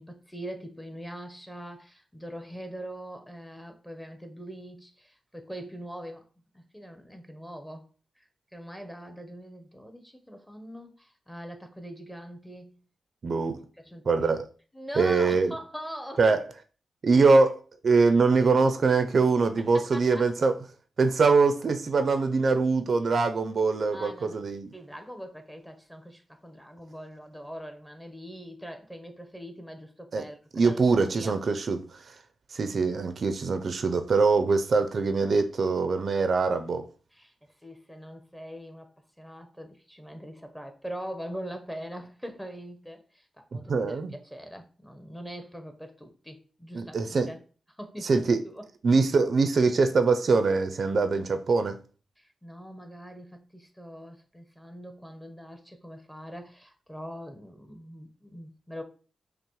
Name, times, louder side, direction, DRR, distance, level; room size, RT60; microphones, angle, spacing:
voice 1, 0.0-6.2 6.5-7.9 8.2-12.7 13.8-14.1 14.7-16.2 19.7-20.2 23.9-24.4 24.7-31.4 37.1-37.3 37.6-38.9 39.2-47.4 47.8-48.7 52.2-58.8, equal, 5° left, 0.7 m, -42 dB
voice 2, 13.2-13.6 14.1-14.5 15.0-15.5 16.2-16.4 17.0-20.6 21.0-24.7 30.1-30.2 30.5-31.8 32.5-36.8 43.5-44.1 46.7-47.3 48.0-48.4 48.8-51.8, right 4 dB, 60° right, 0.4 m, -23 dB
5.6 x 2.0 x 3.0 m
cardioid pair, 80°, 0 cm